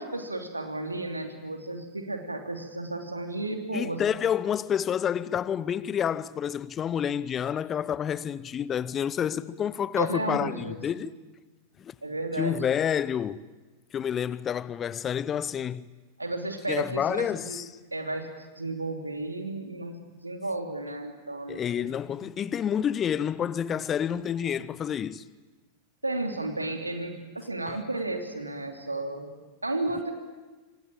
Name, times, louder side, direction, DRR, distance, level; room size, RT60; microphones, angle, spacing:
voice 1, 0.0-4.0 10.0-11.1 12.0-12.7 16.2-18.3 18.6-21.9 22.2-22.3 26.0-29.3 29.6-30.1, right 2 dB, 85° right, 3.0 m, -33 dB
voice 2, 3.7-11.1 11.8-11.9 12.4-13.4 13.9-15.9 16.7-17.6 21.5-25.2 27.7-27.8, left 8 dB, 25° left, 0.8 m, -29 dB
26.5 x 25.5 x 8.8 m
figure-of-eight pair, 90°, 0 cm